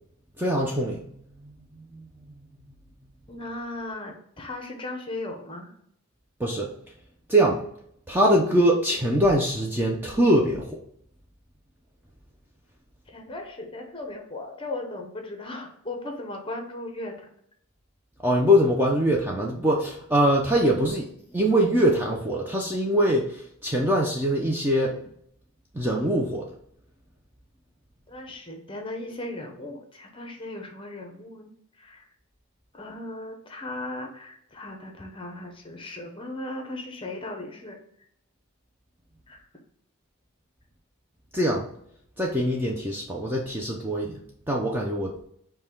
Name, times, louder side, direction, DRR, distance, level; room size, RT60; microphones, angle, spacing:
voice 1, 0.4-1.0 1.3-1.4 1.8-2.1 2.4-2.5 6.4-6.7 7.3-7.6 8.1-10.8 18.2-21.1 21.3-24.9 25.7-26.5 41.3-41.7 42.2-45.2, equal, 10° right, -2 dB, 0.4 m, -23 dB
voice 2, 3.3-5.7 13.1-17.2 28.1-32.0 32.7-37.8 39.3-39.5, left 2 dB, 25° left, 3 dB, 0.8 m, -37 dB
5.3 x 2.2 x 4.5 m, 0.68 s
head